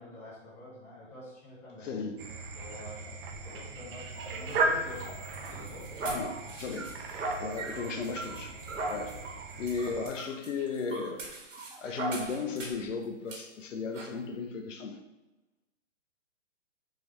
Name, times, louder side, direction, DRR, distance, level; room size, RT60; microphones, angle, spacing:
voice 1, 0.0-2.0 2.5-3.2 3.4-5.9 7.6-7.9, left 1 dB, 5° left, -7 dB, 0.5 m, -47 dB
voice 2, 1.8-2.2 6.0-6.9 7.4-8.6 8.9-9.2 9.6-11.2 11.8-15.0, left 4 dB, 75° left, 6 dB, 0.6 m, -35 dB
sound 1, 2.2-10.1, right 2 dB, 45° right, 0.5 m, -37 dB
sound 2, 4.2-12.9 13.3-13.4 13.9-14.1, right 2 dB, 80° right, 1.1 m, -39 dB
3.7 x 3.1 x 2.9 m, 1.0 s
hypercardioid pair, 140°, 38 cm